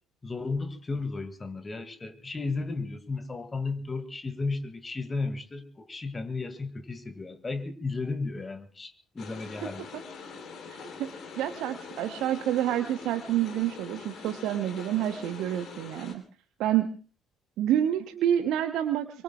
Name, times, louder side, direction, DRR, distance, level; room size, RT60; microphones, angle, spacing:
voice 1, 0.2-9.9, left 3 dB, 25° left, 11 dB, 2.2 m, -34 dB
sound 1, 9.2-16.1, left 5 dB, 50° left, 3.2 m, -44 dB
voice 2, 10.7-11.1 11.4-16.2 16.6-16.9 17.6-19.2, right 11 dB, 65° right, 9 dB, 0.9 m, -28 dB
26.0 x 23.5 x 2.4 m, 0.37 s
figure-of-eight pair, 50°, 0 cm